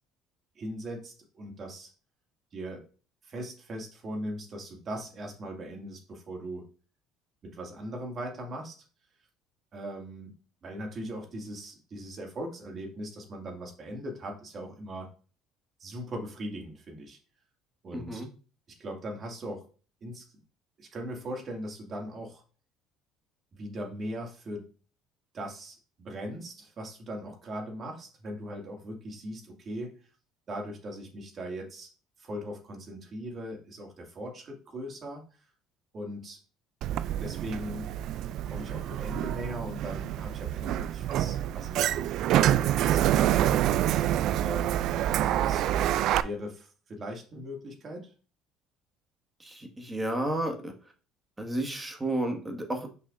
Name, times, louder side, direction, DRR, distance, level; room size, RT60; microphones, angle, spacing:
voice 1, 0.6-1.9 2.5-2.9 3.2-6.7 7.4-8.7 9.7-10.3 10.6-15.1 15.8-17.2 17.8-18.2 18.8-19.6 20.0-20.3 20.8-22.4 23.5-24.7 25.3-29.9 30.5-31.9 32.2-35.2 35.9-36.4 37.2-37.9 38.4-43.4 44.4-44.9 45.4-45.7 46.2-48.1, equal, 45° right, 1 dB, 2.2 m, -39 dB
voice 2, 17.9-18.3 49.4-50.7 51.4-52.9, right 1 dB, 15° right, 3 dB, 1.7 m, -32 dB
Sliding door, 36.8-46.2, right 12 dB, 65° right, 0.3 m, -27 dB
6.5 x 5.6 x 2.6 m, 0.37 s
supercardioid pair, 75°, 0 cm